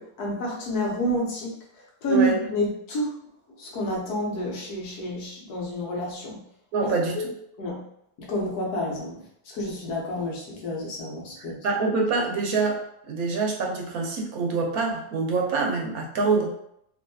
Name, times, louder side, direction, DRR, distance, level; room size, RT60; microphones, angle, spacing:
voice 1, 0.0-3.1 3.6-6.4 6.8-6.9 7.1-7.3 7.6-7.9 8.2-11.7, equal, 90° left, -2 dB, 1.5 m, -29 dB
voice 2, 2.1-2.4 6.7-7.2 11.6-16.5, right 4 dB, 70° right, 0 dB, 1.1 m, -25 dB
3.1 x 2.7 x 2.7 m, 0.74 s
omnidirectional pair, 1.6 m